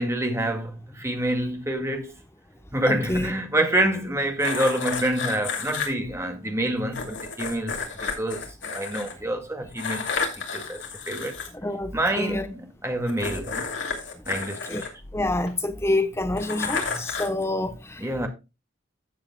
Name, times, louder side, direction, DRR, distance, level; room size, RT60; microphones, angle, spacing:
voice 1, 0.0-2.1 2.7-7.8 8.1-10.1 10.4-10.8 11.1-11.4 11.9-13.7 14.3-14.6 18.0-18.3, right 1 dB, 15° right, 2.1 m, -27 dB
voice 2, 2.9-3.3 11.6-12.5 14.7-14.8 15.1-18.0, left 2 dB, 15° left, 1.0 m, -27 dB
sound 1, 4.4-5.9 6.9-9.1 9.8-11.5 13.1-15.5 16.4-17.4, left 5 dB, 65° left, 2.9 m, -31 dB
14.5 x 7.4 x 2.3 m
head